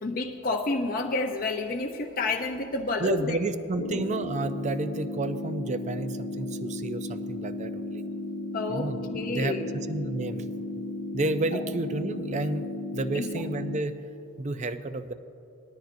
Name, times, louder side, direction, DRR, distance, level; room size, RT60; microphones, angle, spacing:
voice 1, 0.0-3.4 3.8-4.0 8.5-9.7 11.5-11.6 13.1-13.4, left 3 dB, 40° left, 2 dB, 0.5 m, -30 dB
voice 2, 3.0-8.0 8.7-10.5 11.1-13.9 14.4-15.1, right 2 dB, 30° right, 11 dB, 0.4 m, -31 dB
sound 1, 3.8-13.8, left 2 dB, 80° left, 0.8 m, -35 dB
19.5 x 13.0 x 2.6 m, 2.8 s
head